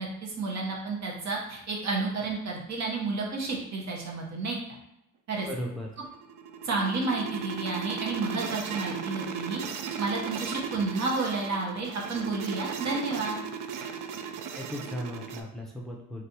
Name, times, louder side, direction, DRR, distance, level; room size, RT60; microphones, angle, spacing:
voice 1, 0.0-4.6 5.3-5.5 6.6-9.6 10.0-13.4, right 3 dB, 55° right, -1 dB, 1.0 m, -31 dB
voice 2, 5.4-5.9 14.5-16.2, equal, ahead, -1 dB, 0.6 m, -36 dB
sound 1, 6.0-15.4, right 6 dB, 75° right, 0.5 m, -36 dB
3.2 x 2.6 x 2.8 m, 0.85 s
cardioid pair, 85°, 32 cm